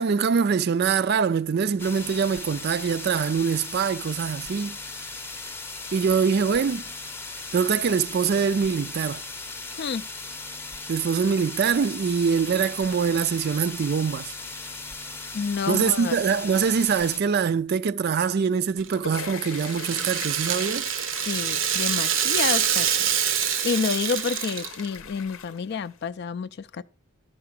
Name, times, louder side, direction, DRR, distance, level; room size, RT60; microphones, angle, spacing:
voice 1, 0.0-4.8 5.9-6.8 7.5-9.2 10.9-14.3 15.7-20.9, right 6 dB, 50° right, 0.4 m, -24 dB
sound 1, 1.8-17.2, left 3 dB, 10° left, 0.6 m, -37 dB
voice 2, 15.3-16.2 21.1-23.1 23.6-26.8, left 5 dB, 55° left, 0.4 m, -29 dB
sound 2, 18.6-26.0, left 7 dB, 90° left, 0.7 m, -40 dB
Rattle (instrument), 18.8-25.0, right 9 dB, 70° right, 0.7 m, -26 dB
12.0 x 4.8 x 5.8 m
head